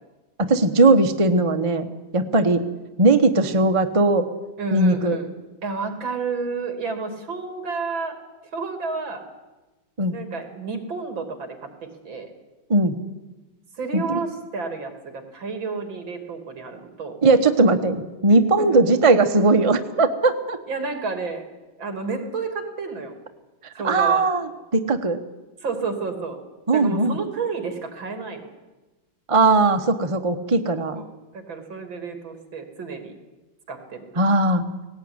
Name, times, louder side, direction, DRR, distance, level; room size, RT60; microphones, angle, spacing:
voice 1, 0.4-1.9 2.1-2.6 3.0-4.3 4.7-5.2 10.0-10.1 12.7-13.0 13.9-14.2 17.2-20.6 23.8-25.2 26.7-27.2 29.3-31.0 34.2-34.7, right 2 dB, 20° right, 7 dB, 0.9 m, -19 dB
voice 2, 4.6-5.3 5.6-8.2 8.5-9.3 10.1-12.3 13.8-17.2 18.6-18.8 20.7-21.5 21.8-23.1 23.8-24.2 25.6-26.4 26.7-28.5 30.9-31.0 31.3-33.1 33.7-34.0, right 4 dB, 70° right, 6 dB, 3.6 m, -30 dB
18.0 x 18.0 x 9.8 m, 1.1 s
omnidirectional pair, 2.2 m